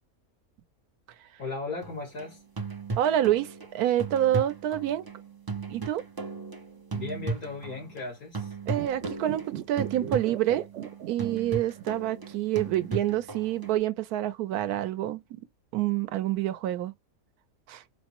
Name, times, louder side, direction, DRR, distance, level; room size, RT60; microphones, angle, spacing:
voice 1, 1.4-2.4 6.9-8.6, left 3 dB, 70° left, 2.4 m, -36 dB
sound 1, 1.8-8.1 8.3-13.8, right 4 dB, 30° right, 0.4 m, -37 dB
voice 2, 3.0-5.0 5.7-6.0 8.7-10.7 11.1-15.2 15.7-16.9 17.7-17.8, right 12 dB, 85° right, 1.1 m, -27 dB
sound 2, 8.7-12.1 12.3-12.4, right 10 dB, 65° right, 0.8 m, -39 dB
5.0 x 2.1 x 2.9 m
omnidirectional pair, 1.6 m